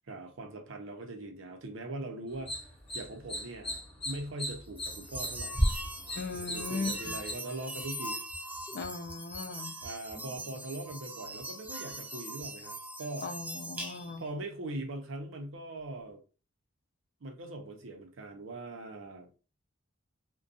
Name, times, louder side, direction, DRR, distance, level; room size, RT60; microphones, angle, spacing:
voice 1, 0.0-2.7 2.9-5.6 6.3-8.2 9.8-13.3 14.2-16.2 17.2-19.3, right 2 dB, 75° right, 0.6 m, -41 dB
sound 1, 2.3-7.3, left 1 dB, 25° left, 0.9 m, -40 dB
sound 2, 4.8-14.3, equal, 10° right, 0.6 m, -38 dB
voice 2, 6.1-7.1 8.7-9.8 13.2-14.3, left 4 dB, 50° left, 0.4 m, -38 dB
2.4 x 2.2 x 2.6 m
head